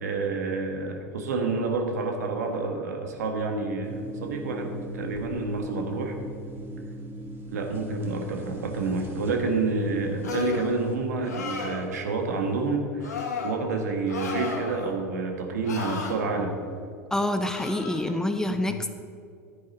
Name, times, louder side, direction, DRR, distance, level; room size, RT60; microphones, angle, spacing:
voice 1, 0.0-6.2 7.5-16.5 18.5-18.6, right 3 dB, 80° right, 4 dB, 1.6 m, -29 dB
sound 1, 3.8-11.0, right 1 dB, 25° right, 2.0 m, -39 dB
sound 2, 10.2-10.7 11.2-11.9 13.0-13.5 14.1-14.9 15.6-16.1 17.5-18.0, left 5 dB, 85° left, 1.7 m, -33 dB
voice 2, 17.1-18.9, left 1 dB, 5° left, 7 dB, 0.8 m, -27 dB
10.5 x 9.5 x 4.2 m, 2.4 s
hypercardioid pair, 90°, 9 cm